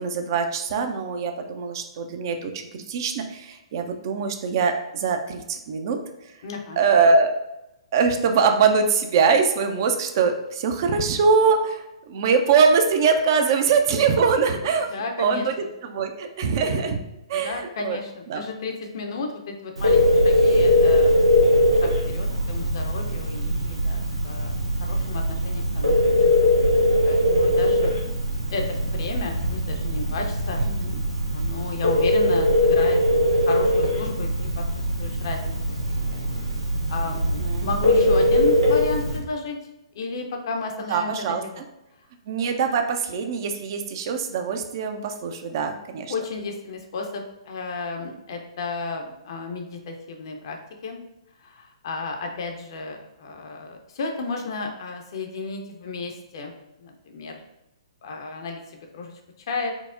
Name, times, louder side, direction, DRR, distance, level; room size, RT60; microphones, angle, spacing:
voice 1, 0.0-6.0 6.8-7.3 7.9-14.9 15.2-17.0 17.3-18.0 18.3-18.4 30.6-30.9 37.4-37.7 40.9-41.6 42.3-46.1, right 5 dB, 40° right, 6 dB, 0.3 m, -22 dB
voice 2, 6.4-6.8 14.9-15.5 17.3-26.3 27.0-27.9 28.5-30.6 31.3-33.0 33.5-34.7 35.0-35.8 36.9-39.6 39.9-41.6 46.1-51.0 51.4-56.5 56.8-57.4 58.0-59.2 59.5-59.7, left 3 dB, 50° left, 3 dB, 0.5 m, -33 dB
Telephone, 19.8-39.2, left 1 dB, 80° right, 0.9 m, -21 dB
4.4 x 2.0 x 2.5 m, 0.92 s
figure-of-eight pair, 120°, 3 cm